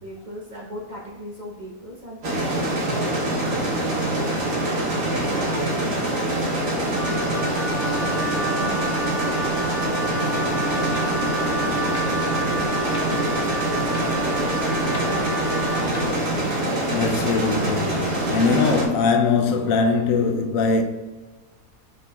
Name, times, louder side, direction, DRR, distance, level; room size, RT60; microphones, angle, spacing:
voice 1, 0.0-4.4 4.7-12.7 13.0-15.7, equal, 40° right, 0.7 m, -39 dB
sound 1, 2.2-18.9, right 1 dB, 65° right, 1.4 m, -24 dB
Wind instrument woodwind instrument, 6.9-16.1, right 1 dB, 45° left, 1.0 m, -30 dB
Clock, 10.7-16.6, left 1 dB, 30° left, 0.4 m, -44 dB
voice 2, 16.9-20.8, left 4 dB, 75° left, 0.9 m, -21 dB
4.9 x 4.4 x 2.3 m
omnidirectional pair, 1.5 m